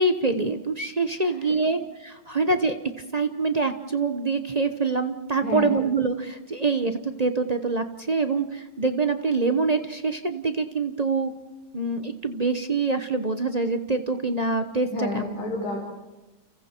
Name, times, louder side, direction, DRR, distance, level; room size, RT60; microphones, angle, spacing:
voice 1, 0.0-2.8 3.1-11.3 11.7-15.2, right 3 dB, 40° right, 8 dB, 0.6 m, -25 dB
voice 2, 1.2-1.5 5.4-5.8 14.9-15.8, left 2 dB, 45° left, -1 dB, 4.8 m, -30 dB
30.0 x 30.0 x 4.5 m, 1.1 s
omnidirectional pair, 2.3 m